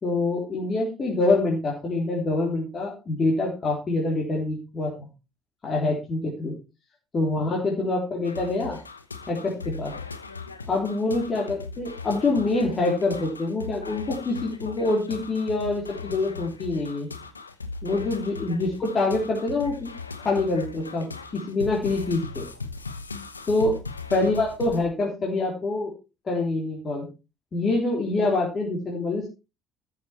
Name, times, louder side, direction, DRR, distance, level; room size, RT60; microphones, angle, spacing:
voice 1, 0.0-4.9 5.6-6.5 7.1-8.8 9.3-9.9 10.7-17.1 17.8-19.9 20.2-22.5 23.5-23.8 24.1-25.9 26.3-27.1 27.5-29.3, left 2 dB, 35° left, -2 dB, 3.5 m, -25 dB
sound 1, 8.2-24.8, left 4 dB, 85° left, 1.0 m, -38 dB
13.5 x 7.0 x 4.4 m, 0.29 s
figure-of-eight pair, 55°, 0 cm